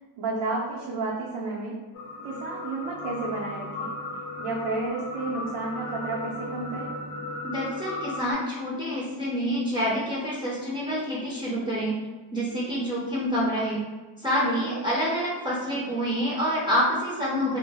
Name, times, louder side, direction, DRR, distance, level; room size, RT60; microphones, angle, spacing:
voice 1, 0.2-1.8 2.2-3.9 4.4-6.9 14.4-14.8, right 3 dB, 75° right, -5 dB, 0.6 m, -31 dB
sound 1, 1.9-8.3, left 2 dB, 80° left, 0.6 m, -36 dB
voice 2, 7.4-12.0 12.3-13.8 14.2-17.6, equal, 10° right, -7 dB, 0.4 m, -27 dB
2.1 x 2.0 x 3.2 m, 1.3 s
cardioid pair, 120°, 49 cm